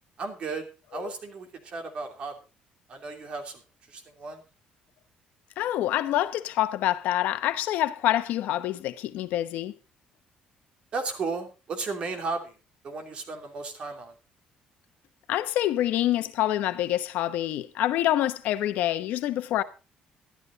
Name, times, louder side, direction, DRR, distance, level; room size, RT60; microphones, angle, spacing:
voice 1, 0.2-2.3 2.9-3.6 3.9-4.4 10.9-12.6 12.8-14.1, right 4 dB, 40° right, 3.0 m, -34 dB
voice 2, 5.6-9.7 15.3-19.6, left 13 dB, 75° left, 1.0 m, -26 dB
12.5 x 12.0 x 4.0 m
cardioid pair, 155°, 3 cm